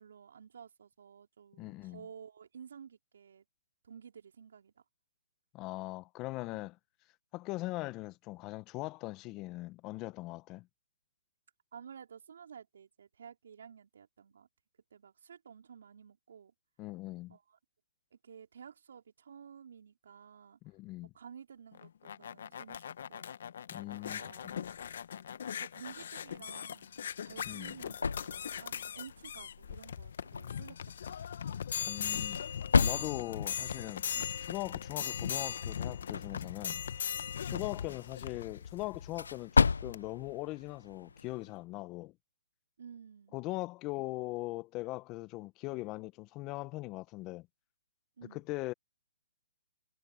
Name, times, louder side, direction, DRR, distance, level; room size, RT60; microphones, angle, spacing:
voice 1, 0.0-3.4 3.8-4.8 6.5-6.7 11.7-14.5 14.9-16.5 17.3-17.6 18.1-20.6 21.1-22.8 23.1-23.3 23.9-24.8 25.5-31.2 34.1-34.4 37.5-37.7 42.8-43.3 48.2-48.5, right 7 dB, 65° right, 4.2 m, -53 dB
voice 2, 1.6-2.0 5.5-6.8 7.3-10.7 16.8-17.4 20.6-21.1 23.7-24.6 27.5-27.7 31.8-32.4 32.7-34.1 34.5-36.8 37.5-42.1 43.3-47.5 48.3-48.7, left 21 dB, 25° left, 1.2 m, -40 dB
sound 1, 21.7-39.4 39.9-40.0, left 8 dB, 60° left, 1.4 m, -39 dB
sound 2, 27.1-41.6, left 5 dB, 80° left, 0.6 m, -36 dB
hypercardioid pair, 140°, 0 cm